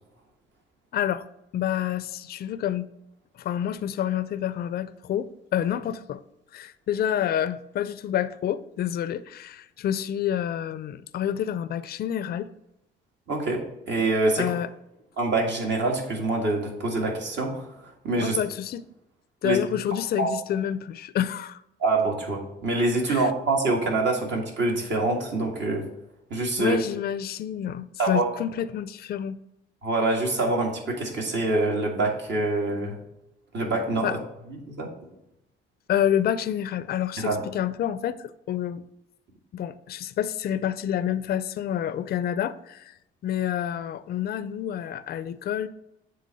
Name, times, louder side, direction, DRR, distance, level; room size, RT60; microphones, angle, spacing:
voice 1, 0.9-1.3 1.5-2.9 3.4-6.2 6.5-12.5 14.4-14.7 18.2-18.8 19.4-21.6 23.1-23.3 26.6-29.4 34.0-34.2 35.9-38.8 39.5-42.9 43.2-45.7, left 10 dB, 50° left, 0.4 m, -28 dB
voice 2, 13.3-14.5 15.2-17.7 18.0-18.4 19.4-19.6 20.2-20.3 21.8-25.9 26.3-26.8 28.0-28.2 29.8-33.0 33.5-34.1 34.7-34.9 37.2-37.4, right 2 dB, 65° right, 1.9 m, -25 dB
7.6 x 3.3 x 5.3 m
cardioid pair, 90°, 20 cm